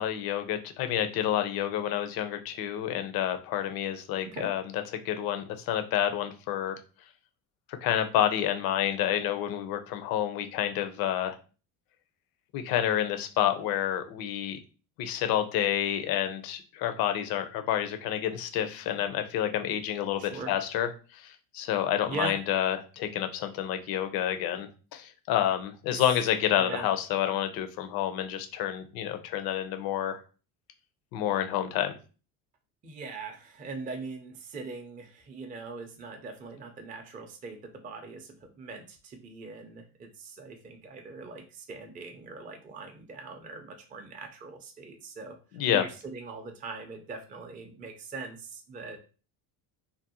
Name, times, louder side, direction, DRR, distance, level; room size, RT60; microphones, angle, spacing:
voice 1, 0.0-6.8 7.8-11.4 12.5-14.6 15.0-30.2 31.1-31.9 45.5-45.8, left 11 dB, 65° left, 8 dB, 0.6 m, -29 dB
voice 2, 20.2-20.5 22.1-22.4 25.9-26.0 26.6-26.9 32.8-45.3 45.7-49.0, right 3 dB, 20° right, 4 dB, 0.4 m, -41 dB
2.5 x 2.0 x 2.7 m, 0.35 s
cardioid pair, 110°, 39 cm